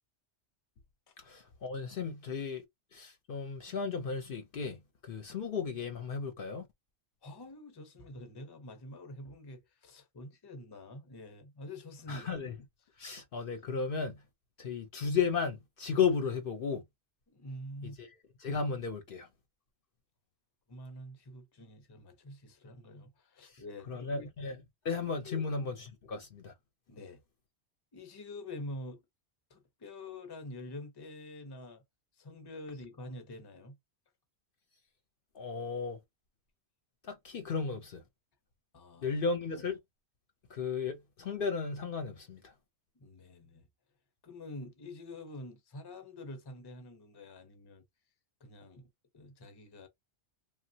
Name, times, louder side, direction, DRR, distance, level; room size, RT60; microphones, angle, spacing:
voice 1, 1.2-2.6 2.9-6.7 12.1-12.5 13.0-14.2 14.6-16.8 18.0-18.1 18.4-19.3 23.4-23.5 23.9-25.7 26.1-26.5 35.3-36.0 37.1-38.0 39.0-39.8 40.5-42.5, left 5 dB, 60° left, 0.8 m, -34 dB
voice 2, 7.2-12.3 17.3-18.0 20.7-24.3 25.2-25.5 26.9-27.2 27.9-29.0 29.5-31.8 32.2-33.8 38.7-39.2 43.0-43.7 44.2-47.8 48.4-48.9 49.1-49.9, left 1 dB, 25° left, 0.7 m, -46 dB
3.0 x 2.3 x 2.7 m
omnidirectional pair, 1.1 m